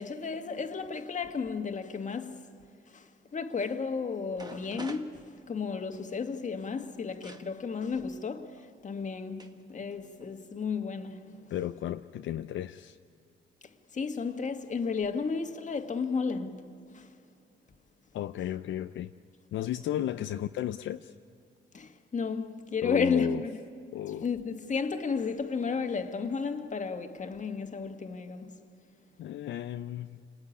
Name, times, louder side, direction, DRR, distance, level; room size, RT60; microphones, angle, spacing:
voice 1, 0.0-2.5 2.9-11.4 13.9-17.1 20.2-20.3 21.7-23.5 24.2-28.6, left 5 dB, 40° left, 1.8 m, -33 dB
sound 1, 4.0-4.1 4.3-6.0 7.2-7.5 8.6-8.7 9.4-9.6 9.9-10.4, right 2 dB, 20° right, 1.7 m, -46 dB
voice 2, 11.5-13.0 18.1-19.1 19.5-21.1 22.8-23.4 23.9-24.3 29.2-30.2, left 12 dB, 75° left, 0.6 m, -34 dB
29.5 x 20.5 x 9.8 m
cardioid pair, 90°, 20 cm